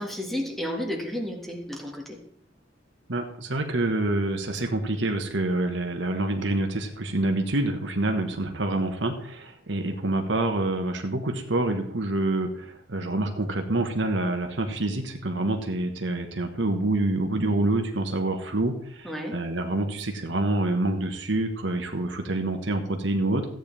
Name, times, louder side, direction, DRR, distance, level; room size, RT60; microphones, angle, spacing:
voice 1, 0.0-2.2 19.0-19.4, equal, ahead, 0 dB, 1.7 m, -32 dB
voice 2, 3.1-23.5, right 2 dB, 65° right, 4 dB, 1.4 m, -27 dB
14.5 x 9.1 x 3.4 m, 0.65 s
head